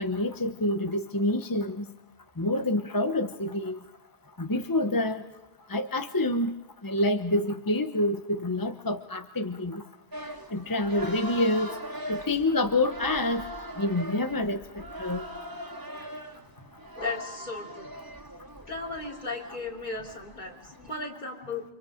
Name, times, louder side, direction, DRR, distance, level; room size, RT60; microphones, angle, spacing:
voice 1, 0.0-1.9 2.4-3.8 4.4-5.2 5.7-6.5 6.8-9.8 10.5-11.7 12.1-13.4 13.8-15.2, left 1 dB, 20° left, 7 dB, 0.8 m, -27 dB
sound 1, 10.1-20.9, equal, 20° right, 2.5 m, -41 dB
voice 2, 17.0-17.9 18.7-21.7, left 3 dB, 45° left, 0 dB, 3.5 m, -36 dB
29.5 x 26.0 x 5.0 m, 0.93 s
omnidirectional pair, 1.1 m